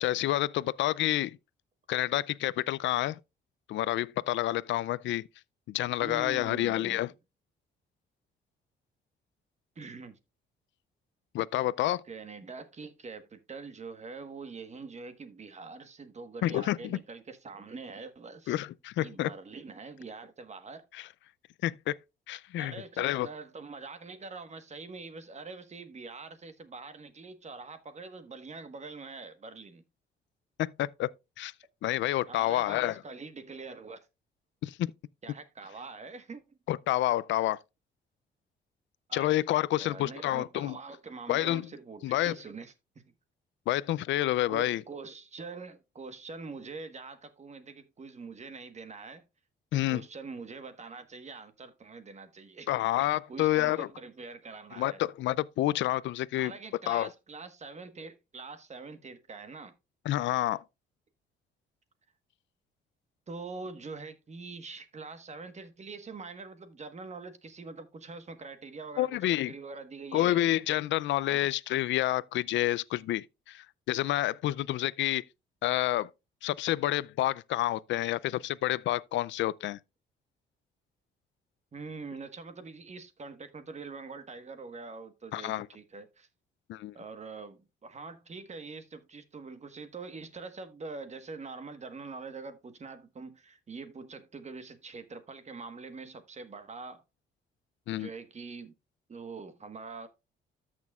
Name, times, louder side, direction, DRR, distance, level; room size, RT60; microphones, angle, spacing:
voice 1, 0.0-1.4 1.9-3.2 3.7-5.2 5.7-7.1 11.3-12.0 16.4-17.0 18.5-19.3 20.9-21.1 21.6-22.0 22.3-23.3 30.6-31.1 31.4-31.5 31.8-33.0 34.6-34.9 36.7-37.6 39.1-40.8 41.3-41.7 42.0-42.3 43.7-44.8 49.7-50.0 52.7-53.9 54.8-56.5 56.9-57.1 60.1-60.6 69.0-69.5 70.1-75.2 75.6-76.1 76.4-79.8 85.3-85.7 86.7-86.9 97.9-98.1, left 15 dB, 70° left, 0.4 m, -29 dB
voice 2, 6.0-7.1 9.7-10.2 12.0-18.6 19.0-20.8 22.6-29.8 32.3-34.0 35.2-36.4 39.1-39.3 39.8-42.7 44.5-49.2 49.7-52.7 53.3-55.0 56.4-59.7 63.3-70.5 71.3-71.5 81.7-86.3 86.9-97.0 97.9-98.7 99.1-100.1, right 4 dB, 35° right, 1.3 m, -44 dB
13.5 x 6.1 x 2.4 m
cardioid pair, 90°, 20 cm